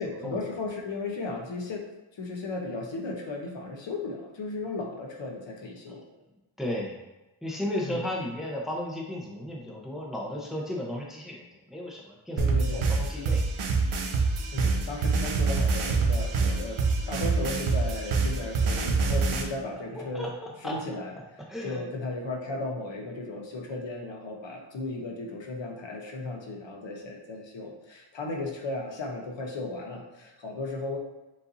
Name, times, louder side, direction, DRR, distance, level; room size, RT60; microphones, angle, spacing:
voice 1, 0.0-1.8 2.2-6.0 7.8-8.0 12.4-12.9 14.5-16.8 17.1-20.3 20.6-31.0, left 3 dB, 65° left, 1 dB, 1.0 m, -35 dB
voice 2, 6.6-6.9 7.4-13.4 19.2-19.3 19.9-20.8 21.5-21.8, left 1 dB, ahead, -2 dB, 0.8 m, -34 dB
sound 1, 12.4-19.4, right 4 dB, 75° right, 0.8 m, -25 dB
7.2 x 2.7 x 2.6 m, 1.0 s
wide cardioid pair, 105°, 49 cm